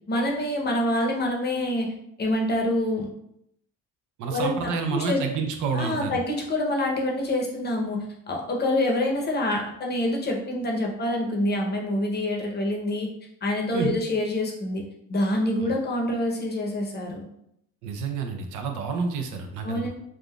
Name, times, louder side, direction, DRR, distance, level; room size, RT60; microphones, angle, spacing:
voice 1, 0.1-1.9 2.2-3.1 4.3-5.2 5.7-13.1 13.4-14.8 15.1-17.2 19.6-19.9, left 1 dB, 35° left, 0 dB, 0.7 m, -26 dB
voice 2, 4.2-6.2 13.7-13.9 15.6-15.7 17.8-19.9, right 5 dB, 85° right, 4 dB, 0.5 m, -29 dB
3.4 x 2.5 x 2.2 m, 0.76 s
cardioid pair, 90°, 30 cm